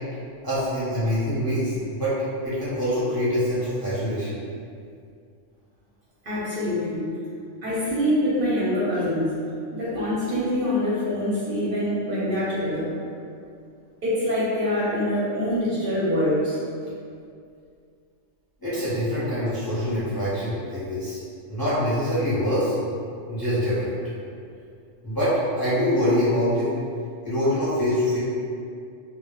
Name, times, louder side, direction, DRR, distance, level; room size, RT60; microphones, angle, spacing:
voice 1, 0.4-2.2 2.4-4.4 18.6-21.2 21.5-22.7 23.3-24.0 25.0-26.7 27.2-28.2, equal, 25° left, -13 dB, 0.5 m, -24 dB
voice 2, 6.2-7.0 7.6-9.3 9.7-12.9 14.0-16.6, left 1 dB, 60° right, -9 dB, 0.6 m, -24 dB
2.1 x 2.0 x 2.9 m, 2.4 s
omnidirectional pair, 1.3 m